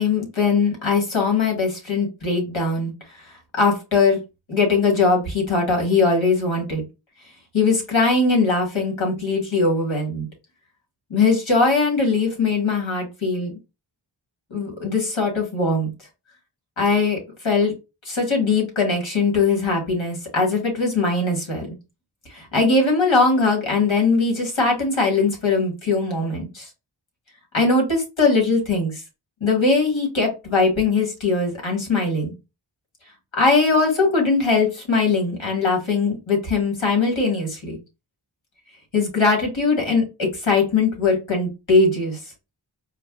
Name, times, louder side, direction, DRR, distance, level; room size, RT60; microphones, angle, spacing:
voice 1, 0.0-2.9 3.2-4.2 4.5-6.8 7.5-10.3 11.1-13.6 14.5-15.9 16.8-17.2 17.4-17.7 18.0-21.8 22.3-26.7 27.5-29.0 29.4-32.3 33.3-37.8 38.9-42.2, left 3 dB, 70° left, 0 dB, 1.6 m, -20 dB
4.5 x 2.1 x 2.3 m, 0.27 s
wide cardioid pair, 40°, 47 cm